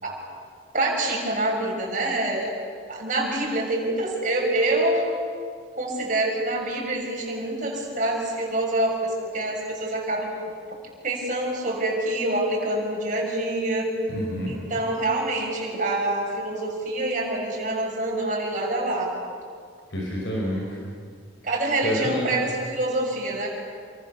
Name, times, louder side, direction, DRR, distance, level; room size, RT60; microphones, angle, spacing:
voice 1, 0.7-2.5 2.9-5.1 5.8-10.3 11.0-13.9 14.5-19.1 21.4-23.5, right 1 dB, 45° right, -1 dB, 6.8 m, -26 dB
voice 2, 14.1-14.6 19.9-20.9 21.8-22.4, equal, 70° left, -3 dB, 5.3 m, -28 dB
29.0 x 25.0 x 7.2 m, 2.1 s
head